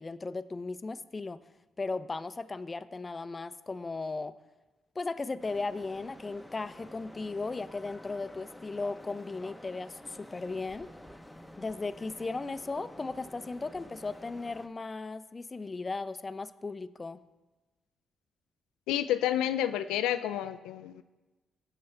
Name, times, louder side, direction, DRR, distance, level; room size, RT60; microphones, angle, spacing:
voice 1, 0.0-1.4 1.8-4.4 5.0-10.9 11.6-17.2, left 3 dB, 30° left, 13 dB, 0.6 m, -36 dB
sound 1, 5.4-14.7, left 1 dB, 5° left, 0.9 m, -50 dB
voice 2, 18.9-21.0, left 11 dB, 85° left, 11 dB, 0.3 m, -30 dB
17.0 x 6.7 x 3.4 m, 1.2 s
supercardioid pair, 55°, 0 cm